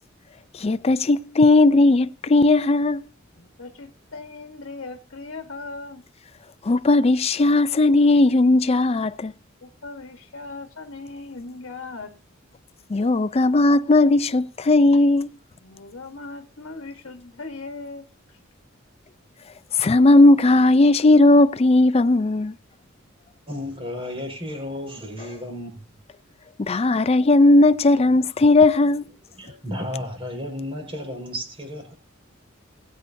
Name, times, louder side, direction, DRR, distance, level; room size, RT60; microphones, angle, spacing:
voice 1, 0.5-3.0 6.6-9.3 12.9-15.3 19.8-22.6 26.6-29.1, left 2 dB, 30° left, 0.4 m, -17 dB
voice 2, 3.3-6.0 9.6-12.1 15.6-18.4, left 3 dB, 65° left, 1.3 m, -38 dB
voice 3, 23.5-25.7 29.4-31.9, left 1 dB, 30° right, 4.8 m, -33 dB
20.5 x 8.3 x 2.7 m
head